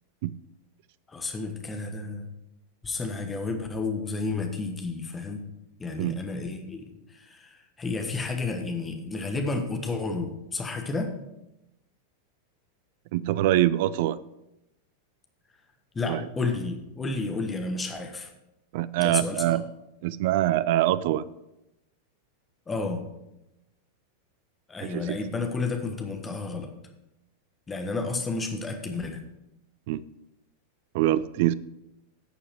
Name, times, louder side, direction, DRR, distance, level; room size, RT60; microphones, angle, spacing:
voice 1, 1.1-2.3 2.8-5.4 5.8-11.1 15.9-18.3 19.0-19.6 22.7-23.0 24.7-26.7 27.7-29.2, left 3 dB, 15° left, 5 dB, 1.3 m, -31 dB
voice 2, 13.1-14.2 16.1-16.3 18.7-19.6 20.0-21.3 24.8-25.2 29.9-30.0 30.9-31.5, right 14 dB, 50° right, 17 dB, 0.3 m, -24 dB
11.0 x 7.0 x 4.5 m, 0.91 s
figure-of-eight pair, 90°, 0 cm